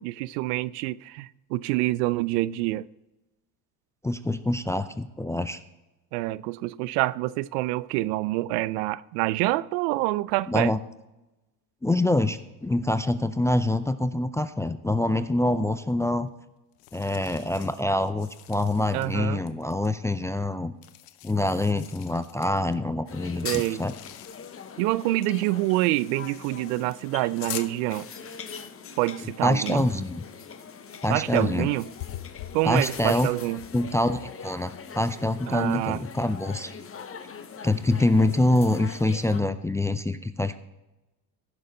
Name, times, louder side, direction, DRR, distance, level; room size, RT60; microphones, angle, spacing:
voice 1, 0.0-2.9 6.1-10.7 18.9-19.4 23.4-23.8 24.8-28.1 29.0-29.9 31.1-31.9 32.5-33.6 35.5-36.0, right 18 dB, 75° right, 0.5 m, -26 dB
voice 2, 4.0-5.6 10.5-10.8 11.8-16.3 16.9-20.7 21.2-23.9 29.4-30.2 31.0-31.7 32.6-33.3 33.7-36.7 37.6-40.6, left 1 dB, 5° left, 0.3 m, -25 dB
sound 1, 15.9-16.0 16.7-19.2 19.5-19.9 20.8-22.8 23.4-24.7 25.1-27.7 31.1-31.2 31.7-34.4, left 15 dB, 75° left, 0.8 m, -44 dB
sound 2, 23.1-39.4, left 6 dB, 30° left, 1.0 m, -42 dB
15.5 x 6.4 x 3.9 m
hypercardioid pair, 75°, 47 cm